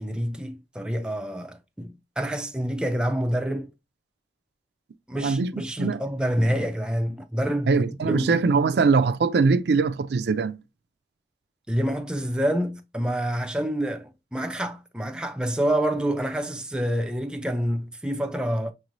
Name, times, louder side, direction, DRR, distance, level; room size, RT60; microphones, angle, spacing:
voice 1, 0.0-3.7 5.1-8.4 11.7-18.7, equal, 5° right, 0.4 m, -27 dB
voice 2, 5.1-5.5 5.8-6.0 7.7-10.6, right 4 dB, 70° right, 0.4 m, -22 dB
5.9 x 3.0 x 2.5 m
head